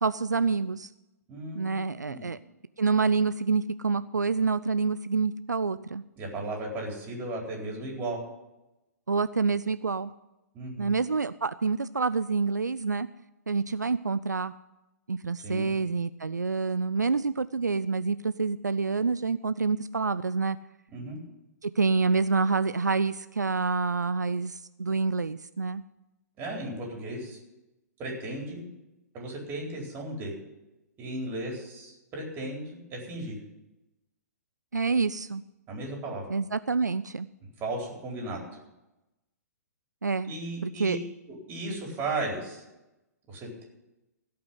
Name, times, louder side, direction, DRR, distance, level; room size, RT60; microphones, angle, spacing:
voice 1, 0.0-0.9 1.5-2.4 2.8-6.0 9.1-10.1 10.8-13.1 13.5-14.5 15.1-20.6 21.6-25.8 34.7-35.4 36.3-37.3 40.0-40.3 40.6-41.0, right 4 dB, 85° right, 14 dB, 0.4 m, -27 dB
voice 2, 1.3-2.3 6.2-8.2 10.5-10.9 15.4-15.7 20.9-21.2 26.4-27.4 28.0-28.7 29.1-30.3 31.0-33.4 35.7-36.3 37.6-38.4 40.2-41.0 41.3-42.6 43.3-43.6, right 2 dB, 25° right, -1 dB, 4.2 m, -35 dB
16.5 x 5.7 x 9.3 m, 0.97 s
figure-of-eight pair, 120°, 9 cm